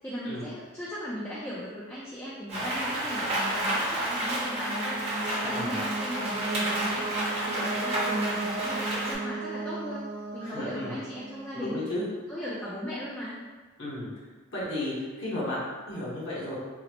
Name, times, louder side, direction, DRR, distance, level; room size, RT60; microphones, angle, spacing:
voice 1, 0.0-5.0 5.5-7.1 7.4-10.1 10.3-11.8 12.3-13.4, equal, 10° left, -9 dB, 0.4 m, -37 dB
Rain, 2.5-9.1, right 1 dB, 30° right, 0.7 m, -30 dB
sound 1, 4.0-11.7, right 3 dB, 65° right, 0.4 m, -36 dB
voice 2, 5.4-5.8 10.4-11.0 11.5-12.0 13.8-14.1 14.5-16.5, left 1 dB, 60° left, -7 dB, 1.0 m, -33 dB
3.9 x 2.0 x 2.9 m, 1.3 s
head